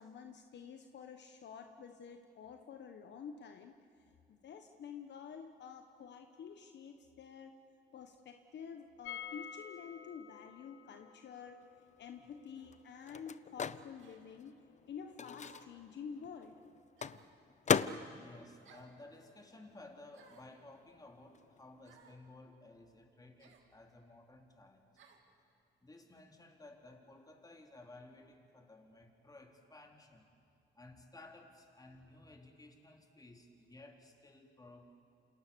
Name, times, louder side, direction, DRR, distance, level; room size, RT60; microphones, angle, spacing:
voice 1, 0.0-3.8 4.3-7.5 7.9-11.6 12.0-14.5 14.9-16.5, left 6 dB, 60° left, 6 dB, 1.4 m, -49 dB
sound 1, 9.0-14.8 15.1-15.2 15.4-15.5, left 8 dB, 90° left, 1.1 m, -52 dB
Microwave oven, 11.7-19.9 20.1-22.0, left 7 dB, 35° left, 0.7 m, -40 dB
sound 2, 12.6-12.8 14.0-14.2 15.4-15.8 17.0-17.4 18.6-19.0 20.1-20.6 21.8-22.2 23.4-23.7 25.0-25.3, right 6 dB, 75° right, 2.9 m, -63 dB
voice 2, 18.2-24.9 25.8-30.3 30.8-34.9, left 2 dB, 20° left, 2 dB, 3.5 m, -56 dB
29.0 x 27.0 x 7.0 m, 2.6 s
cardioid pair, 90°, 20 cm